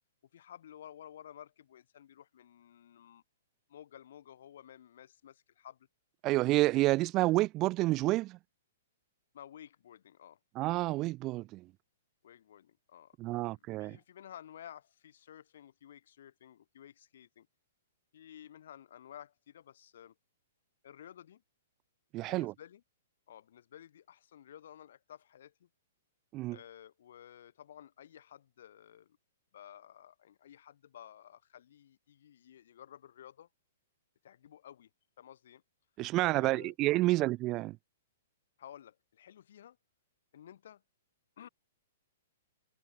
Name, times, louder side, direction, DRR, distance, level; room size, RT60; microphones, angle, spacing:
voice 1, 0.3-3.2 3.7-5.9 9.3-10.4 12.2-17.5 18.1-20.1 20.8-21.4 22.2-22.8 23.3-25.7 26.5-29.2 29.5-33.5 34.2-34.9 35.2-35.6 36.2-37.2 38.6-39.8 40.3-40.8 41.4-41.5, left 10 dB, 55° left, 4.6 m, -53 dB
voice 2, 6.2-8.4 10.6-11.7 13.2-14.0 22.1-22.5 26.3-26.6 36.0-37.8, right 18 dB, 20° right, 0.8 m, -29 dB
hypercardioid pair, 175°, 0 cm